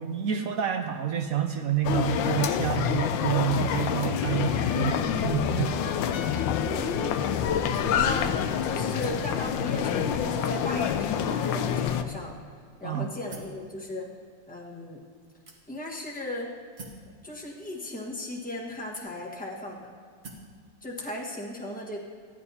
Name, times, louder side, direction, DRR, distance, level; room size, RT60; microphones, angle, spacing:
voice 1, 0.0-5.8 12.8-13.1, right 9 dB, 75° right, 6 dB, 0.8 m, -28 dB
sound 1, 1.8-12.0, left 8 dB, 85° left, 1.3 m, -27 dB
sound 2, 6.1-9.3 9.6-9.8, left 5 dB, 65° left, 1.2 m, -47 dB
voice 2, 6.6-8.3 8.6-12.3 12.8-14.1 14.5-15.0 15.7-16.5 17.2-19.9 20.8-22.0, left 1 dB, 5° left, -3 dB, 1.1 m, -36 dB
sound 3, 13.3-13.6 14.4-14.5 15.5-16.0 16.8-17.1 18.0-18.1 18.9-19.5 20.2-20.5, right 2 dB, 40° right, 1.4 m, -45 dB
15.5 x 11.0 x 2.8 m, 2.1 s
omnidirectional pair, 2.0 m